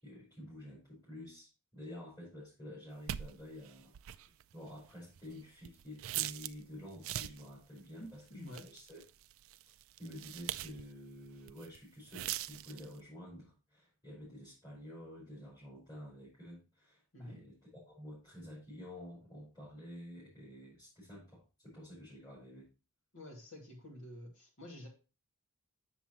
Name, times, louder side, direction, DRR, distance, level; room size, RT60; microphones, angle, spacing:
voice 1, 0.0-3.9 4.2-9.0 10.0-22.7, left 1 dB, 20° left, -8 dB, 4.9 m, -50 dB
sound 1, 3.1-6.6 6.9-7.5 8.1-10.9 11.3-11.8 12.1-13.0, right 13 dB, 60° right, 0.3 m, -42 dB
voice 2, 8.0-8.7 17.1-17.4 23.1-24.9, left 1 dB, 60° left, 1 dB, 2.2 m, -49 dB
7.1 x 6.9 x 3.0 m, 0.31 s
head